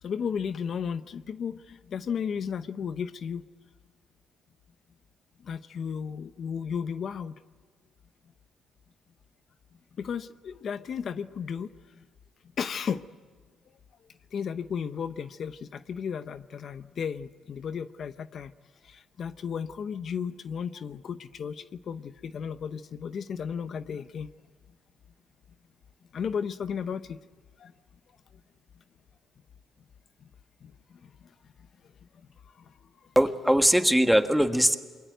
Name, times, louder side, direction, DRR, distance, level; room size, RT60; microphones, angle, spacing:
voice 1, 0.0-3.4 5.4-7.3 10.0-12.0 12.6-13.0 14.3-18.5 18.8-24.3 26.1-27.2 27.6-27.7 30.2-30.3 30.6-31.3 32.1-33.1, left 7 dB, 55° left, 12 dB, 0.8 m, -34 dB
voice 2, 33.1-34.8, equal, 5° right, 7 dB, 1.6 m, -21 dB
28.0 x 23.0 x 9.3 m, 1.5 s
cardioid pair, 90°, 0 cm